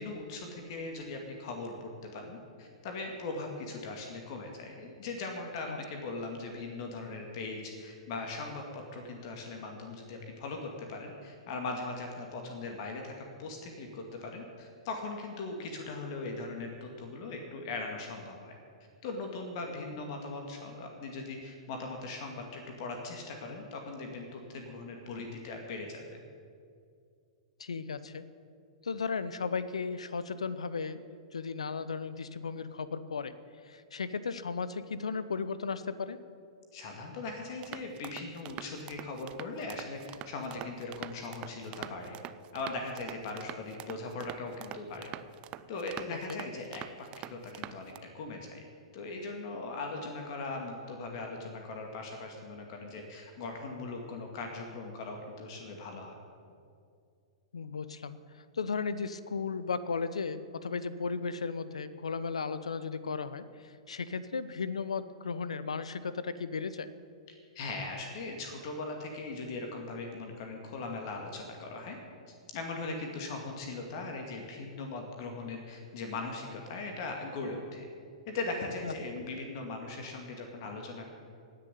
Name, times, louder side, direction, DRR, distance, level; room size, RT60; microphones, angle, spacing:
voice 1, 0.0-10.6 10.9-18.5 19.0-26.0 36.7-42.2 42.5-45.1 45.7-48.6 48.9-56.2 67.5-72.0 72.5-77.9 78.3-81.1, left 3 dB, 50° left, 2 dB, 2.3 m, -39 dB
voice 2, 27.6-28.2 28.8-31.0 31.3-33.3 33.6-36.2 46.1-46.4 57.5-66.9 78.8-78.9, left 5 dB, 80° left, 14 dB, 0.8 m, -35 dB
sound 1, 37.6-48.0, right 13 dB, 35° right, 0.5 m, -45 dB
17.5 x 6.9 x 9.4 m, 2.3 s
hypercardioid pair, 110°, 3 cm